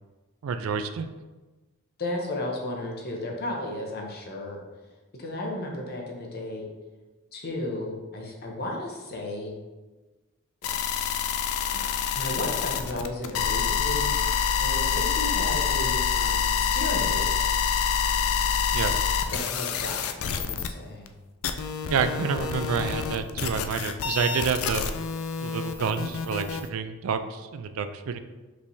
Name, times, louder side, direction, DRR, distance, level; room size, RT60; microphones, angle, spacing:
voice 1, 0.4-1.1 18.7-18.9 21.9-24.8 25.4-28.2, right 6 dB, 80° right, 9 dB, 0.3 m, -28 dB
voice 2, 2.0-4.6 5.1-6.7 7.3-9.5 10.6-10.8 12.1-14.1 14.6-17.4 19.3-21.1, left 1 dB, 50° left, 0 dB, 0.8 m, -34 dB
sound 1, 10.6-20.7 21.1-21.2 21.4-26.6, left 7 dB, 90° left, 0.3 m, -27 dB
5.2 x 3.3 x 2.7 m, 1.2 s
head